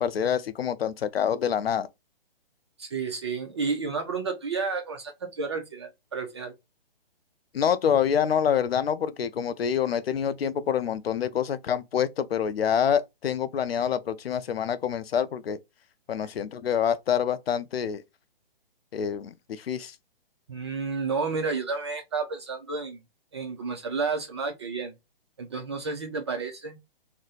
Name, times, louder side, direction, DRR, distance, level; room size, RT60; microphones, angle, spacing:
voice 1, 0.0-1.9 7.5-15.6 16.1-18.0 18.9-19.9, left 8 dB, 85° left, 0.5 m, -26 dB
voice 2, 2.8-6.5 20.5-23.0 23.3-24.9 25.4-26.8, right 4 dB, 30° right, 0.4 m, -31 dB
2.5 x 2.1 x 3.8 m
hypercardioid pair, 150°, 29 cm